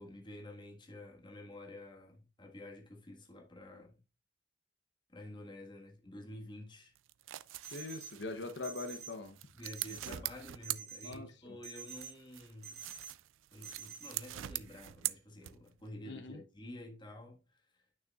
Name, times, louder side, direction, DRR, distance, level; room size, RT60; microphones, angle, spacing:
voice 1, 0.0-4.0 5.1-6.9 9.5-12.8 13.5-17.4 17.7-17.8, left 1 dB, 25° left, 1.5 m, -50 dB
sound 1, 6.9-11.5 11.9-15.9, right 15 dB, 90° right, 0.4 m, -43 dB
sound 2, 7.6-8.1 8.6-9.1 9.6-10.1 10.6-11.1 11.6-12.1 12.6-13.1 13.6-14.1, right 8 dB, 60° right, 2.5 m, -47 dB
voice 2, 7.7-9.4 10.1-10.2 11.0-11.6 16.0-16.4, left 3 dB, 65° left, 0.8 m, -42 dB
8.9 x 6.5 x 2.3 m
head